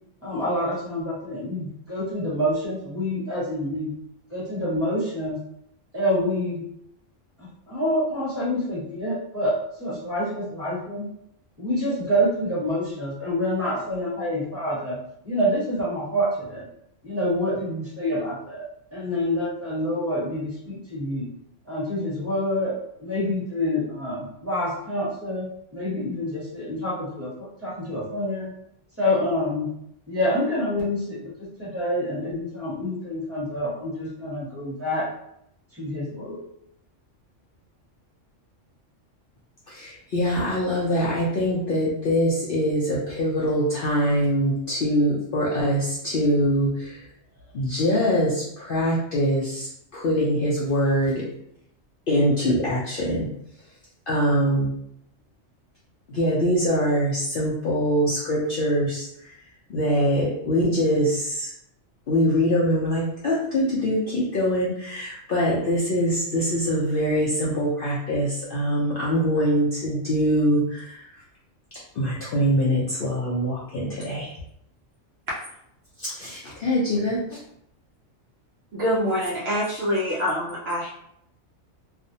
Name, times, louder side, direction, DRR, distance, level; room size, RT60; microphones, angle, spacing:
voice 1, 0.2-4.0 4.3-5.4 5.9-6.6 7.4-11.1 11.6-15.0 15.2-16.7 17.0-18.6 18.9-21.3 21.7-22.7 23.0-25.5 25.7-28.5 29.0-29.7 30.1-31.3 31.6-35.1 35.7-36.4, left 1 dB, 10° right, -8 dB, 1.0 m, -27 dB
voice 2, 39.7-47.1 47.5-51.2 52.1-53.3 54.1-54.7 56.1-59.4 59.7-61.5 62.1-71.2 71.9-74.4 76.0-77.2, equal, 60° left, -6 dB, 0.6 m, -23 dB
voice 3, 78.7-80.9, equal, 65° right, -5 dB, 0.7 m, -25 dB
2.5 x 2.1 x 2.7 m, 0.74 s
omnidirectional pair, 1.3 m